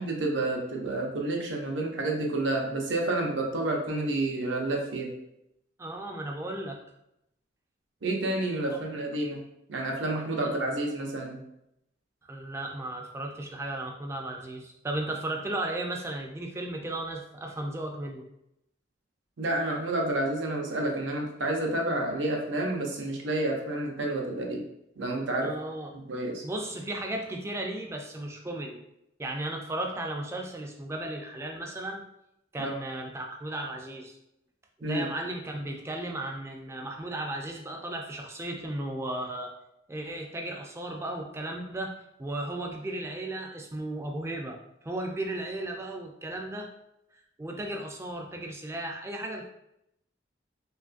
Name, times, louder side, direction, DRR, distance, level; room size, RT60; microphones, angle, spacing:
voice 1, 0.0-5.1 8.0-9.4 9.7-11.4 19.4-24.6 25.0-25.5 25.9-26.4 32.6-32.7 34.8-35.1, right 2 dB, 70° right, 1 dB, 0.6 m, -29 dB
voice 2, 5.8-6.8 8.7-8.9 10.4-10.6 12.3-18.2 25.4-25.9 26.4-28.8 29.2-32.1 32.5-34.1 34.8-39.5 39.9-44.6 44.8-46.7 47.4-49.5, right 1 dB, 15° right, 2 dB, 0.3 m, -35 dB
3.0 x 2.3 x 2.4 m, 0.81 s
head